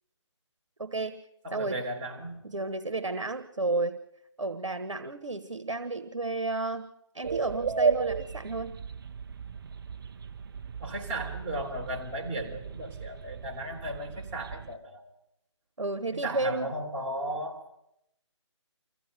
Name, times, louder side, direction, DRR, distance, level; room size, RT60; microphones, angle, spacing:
voice 1, 0.8-1.2 1.5-1.8 2.4-4.0 4.4-6.9 7.1-8.8 15.8-16.7, right 2 dB, 90° right, 10 dB, 1.3 m, -32 dB
voice 2, 1.4-2.4 10.8-15.1 16.1-17.8, right 1 dB, 25° right, -2 dB, 3.5 m, -36 dB
sound 1, 7.2-14.8, right 5 dB, 45° right, 1.0 m, -34 dB
25.0 x 15.5 x 6.7 m, 0.82 s
figure-of-eight pair, 155°, 16 cm